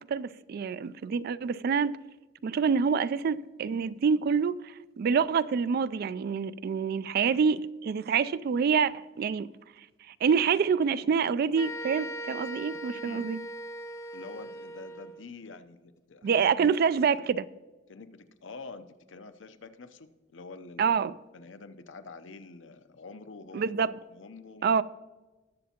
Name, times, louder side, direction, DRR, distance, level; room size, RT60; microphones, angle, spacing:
voice 1, 0.1-1.9 2.4-9.5 10.1-13.4 16.2-17.5 20.8-21.1 23.5-23.9 24.6-24.8, right 6 dB, 55° right, 0.3 m, -26 dB
sound 1, 11.6-15.2, right 1 dB, 15° left, 0.6 m, -39 dB
voice 2, 14.1-16.3 17.9-21.0 21.3-23.7 24.1-24.7, left 4 dB, 85° left, 0.7 m, -47 dB
19.0 x 7.2 x 2.9 m
head